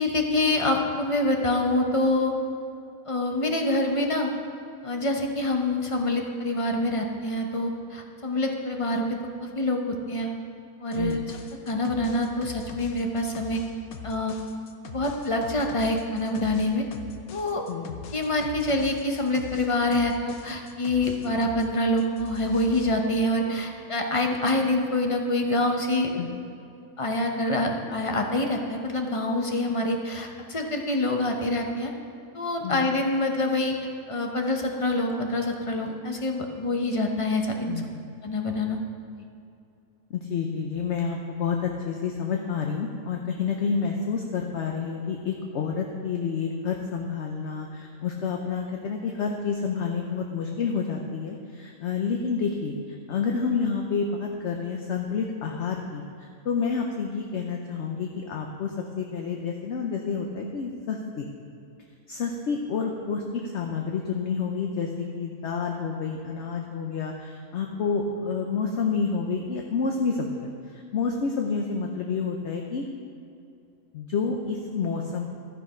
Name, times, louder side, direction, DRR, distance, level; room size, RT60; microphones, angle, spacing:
voice 1, 0.0-2.3 3.1-4.3 4.8-10.3 10.8-11.4 11.7-13.6 14.0-14.3 14.9-16.8 17.3-17.6 18.1-26.2 27.0-31.9 32.3-33.8 34.1-37.7 38.2-38.8, left 1 dB, 30° left, 2 dB, 0.7 m, -26 dB
sound 1, 10.9-21.7 22.0-22.9, left 8 dB, 85° left, 1.2 m, -42 dB
voice 2, 37.7-38.0 40.1-61.3 62.1-72.8 73.9-75.3, left 5 dB, 60° left, 2 dB, 1.0 m, -29 dB
12.5 x 6.6 x 5.0 m, 2.6 s
omnidirectional pair, 1.5 m